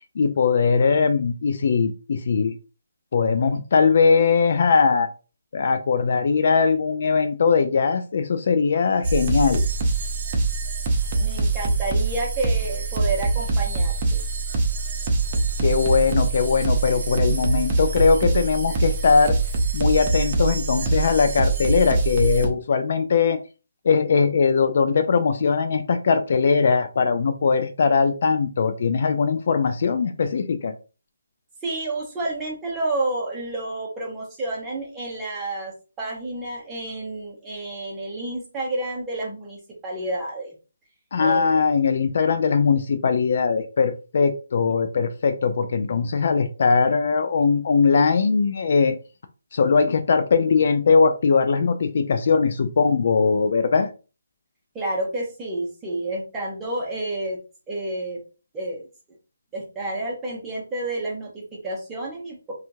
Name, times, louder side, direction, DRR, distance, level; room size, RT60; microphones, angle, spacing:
voice 1, 0.2-2.6 3.1-5.1 5.5-9.6 15.6-19.4 19.7-23.4 23.8-30.7 41.1-49.0 49.5-53.9, left 5 dB, 50° left, 8 dB, 0.3 m, -20 dB
sound 1, 9.0-22.5, right 3 dB, 30° right, 0.6 m, -24 dB
voice 2, 11.2-14.2 31.6-40.5 41.2-41.7 54.7-57.4 57.7-58.2 58.5-58.8 59.5-62.5, right 2 dB, 10° right, -4 dB, 0.9 m, -30 dB
2.8 x 2.4 x 2.6 m, 0.33 s
figure-of-eight pair, 155°, 0 cm